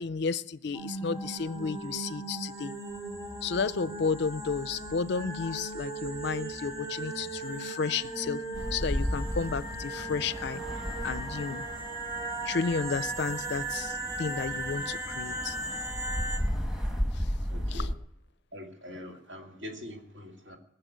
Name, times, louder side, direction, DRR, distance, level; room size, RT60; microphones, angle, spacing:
voice 1, 0.0-2.7 3.4-8.4 8.7-10.6 11.0-11.6 12.4-15.6 17.1-17.3 17.7-17.9, left 5 dB, 55° left, 17 dB, 0.5 m, -32 dB
sound 1, 0.7-16.4, right 2 dB, 20° right, 2.1 m, -37 dB
sound 2, 8.5-18.0, equal, 5° right, 1.4 m, -35 dB
voice 2, 17.0-17.9 18.5-20.6, left 1 dB, 60° right, 2 dB, 2.5 m, -44 dB
20.0 x 6.9 x 9.2 m, 0.82 s
head